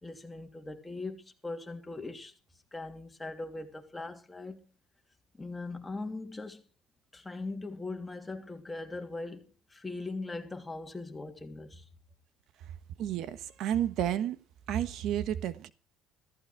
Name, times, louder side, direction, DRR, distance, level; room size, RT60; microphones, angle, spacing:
voice 1, 0.0-2.3 2.7-4.6 5.4-6.6 7.1-11.9, left 3 dB, 15° left, 3.1 m, -40 dB
voice 2, 13.0-14.4 14.7-15.7, right 10 dB, 65° right, 1.3 m, -31 dB
15.0 x 14.0 x 4.6 m
supercardioid pair, 95°, 0 cm